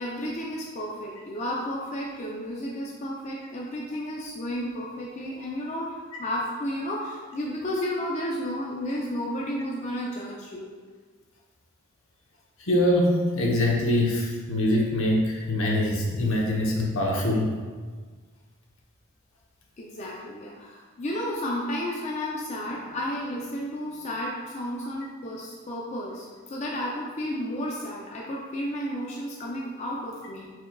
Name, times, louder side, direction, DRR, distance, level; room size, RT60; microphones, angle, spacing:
voice 1, 0.0-10.7 19.8-30.5, equal, 35° left, -3 dB, 0.4 m, -32 dB
voice 2, 12.6-17.6, left 1 dB, 70° left, -2 dB, 0.8 m, -24 dB
4.5 x 4.3 x 2.2 m, 1.5 s
head